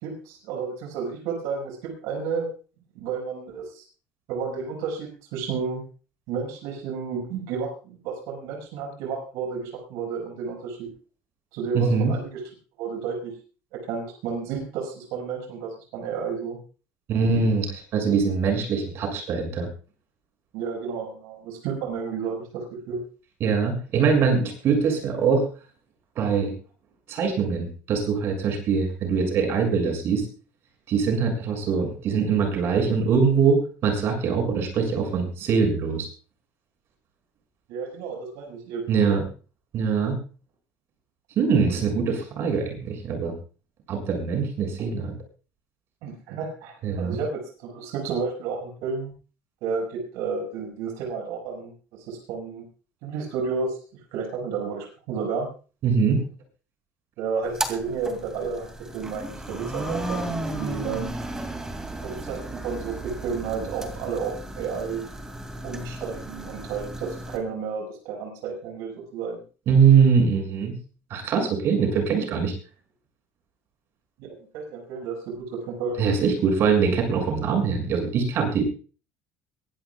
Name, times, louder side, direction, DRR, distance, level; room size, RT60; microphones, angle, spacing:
voice 1, 0.0-2.5 2.9-3.8 4.3-5.8 6.3-10.9 11.5-12.4 12.8-13.3 13.7-16.6 20.5-23.0 37.7-39.2 46.0-49.1 49.6-52.6 53.0-53.8 54.1-55.5 57.2-58.7 58.9-61.1 62.0-65.1 65.6-69.4 74.2-76.0, right 5 dB, 85° right, 1 dB, 6.2 m, -31 dB
voice 2, 11.7-12.1 17.1-19.7 23.4-25.4 26.2-26.5 27.1-30.3 30.9-36.1 38.9-39.2 39.7-40.2 41.4-43.3 43.9-45.1 46.8-47.2 55.8-56.2 69.7-70.8 71.1-72.5 76.0-78.6, right 5 dB, 50° right, 3 dB, 6.9 m, -22 dB
sound 1, 57.4-67.4, right 1 dB, 10° right, 2.6 m, -34 dB
23.0 x 16.5 x 2.4 m, 0.36 s
cardioid pair, 155°, 5 cm